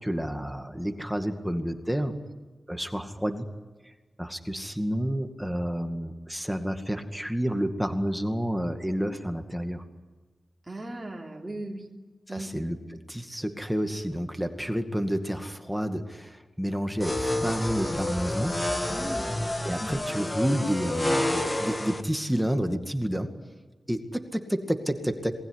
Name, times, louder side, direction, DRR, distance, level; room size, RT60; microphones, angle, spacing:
voice 1, 0.0-2.2 2.7-3.5 3.8-3.9 4.2-9.8 12.3-18.9 19.6-23.3 23.9-25.3, equal, ahead, 6 dB, 2.1 m, -30 dB
voice 2, 10.6-11.9 12.3-12.5 18.8-19.5, right 1 dB, 20° right, -1 dB, 3.3 m, -38 dB
sound 1, 17.0-22.0, left 1 dB, 20° left, 1.9 m, -29 dB
27.0 x 20.5 x 9.9 m, 1.3 s
wide cardioid pair, 130°, 0 cm